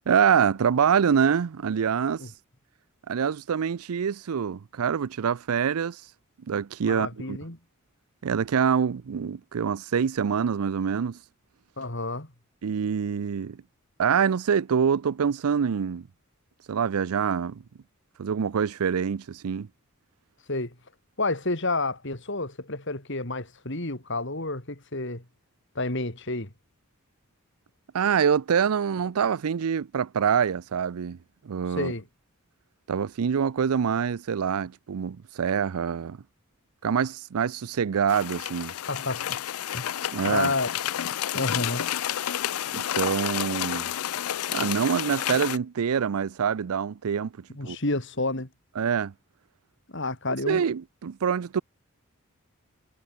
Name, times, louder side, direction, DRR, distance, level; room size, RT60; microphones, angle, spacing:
voice 1, 0.1-2.2 3.1-6.0 6.5-7.4 8.2-11.2 12.6-13.6 14.0-16.1 16.7-17.6 18.2-19.7 27.9-31.2 31.4-31.9 32.9-36.2 36.8-38.7 40.1-40.5 42.7-43.9 44.5-47.8 48.8-49.1 50.5-51.6, right 7 dB, 85° right, 0.5 m, -25 dB
voice 2, 6.8-7.6 11.8-12.3 20.5-20.8 21.2-25.2 25.7-26.5 31.8-32.0 38.9-39.4 39.7-39.8 40.2-40.7 41.3-41.8 47.5-48.5 49.9-50.6, left 2 dB, 55° left, 3.4 m, -30 dB
sound 1, 38.1-45.6, left 11 dB, 85° left, 0.5 m, -30 dB
head